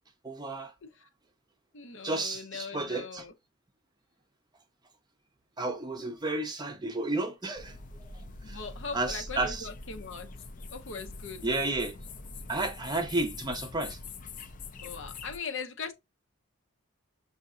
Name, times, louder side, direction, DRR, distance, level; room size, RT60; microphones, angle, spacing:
voice 1, 0.2-0.7 2.0-3.2 5.6-8.6 8.9-9.7 11.4-12.0 12.5-14.0, right 2 dB, 20° right, 0.6 m, -32 dB
voice 2, 1.7-3.3 8.4-10.3 10.7-11.5 14.8-15.9, left 5 dB, 60° left, 0.8 m, -40 dB
sound 1, 7.6-15.4, left 3 dB, 40° left, 0.5 m, -44 dB
6.5 x 2.7 x 2.5 m
head